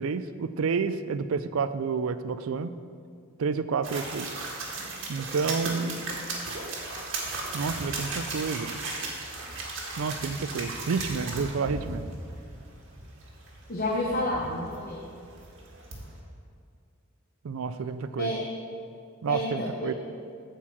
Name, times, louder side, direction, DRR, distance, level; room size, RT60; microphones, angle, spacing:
voice 1, 0.0-2.7 3.4-4.6 5.1-6.0 7.5-8.8 10.0-12.1 17.4-18.3 19.2-19.9, right 5 dB, 90° right, 12 dB, 0.4 m, -30 dB
sound 1, 3.8-16.2, right 3 dB, 65° right, 1.5 m, -36 dB
voice 2, 13.7-15.0 18.2-18.4 19.3-19.9, left 1 dB, 45° left, -3 dB, 1.0 m, -30 dB
8.7 x 4.5 x 7.2 m, 2.3 s
head